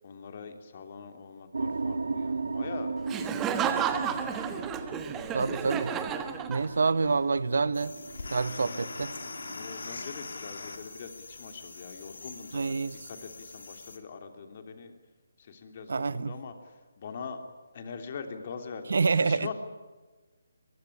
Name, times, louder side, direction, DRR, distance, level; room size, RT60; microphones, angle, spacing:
voice 1, 0.0-2.9 3.9-4.4 8.5-8.8 9.5-14.9 15.4-16.5 17.0-19.5, left 5 dB, 35° left, 3.1 m, -43 dB
sound 1, 1.5-9.9, right 4 dB, 80° right, 1.6 m, -37 dB
Laughter, 3.1-7.0, right 8 dB, 10° right, 1.3 m, -32 dB
voice 2, 5.3-5.9 6.5-7.9 8.3-9.1 12.5-13.0 15.9-16.3 18.9-19.5, right 4 dB, 65° right, 1.2 m, -27 dB
sound 2, 7.7-14.0, left 3 dB, 70° left, 3.6 m, -42 dB
24.0 x 22.0 x 10.0 m
hypercardioid pair, 170°, 0 cm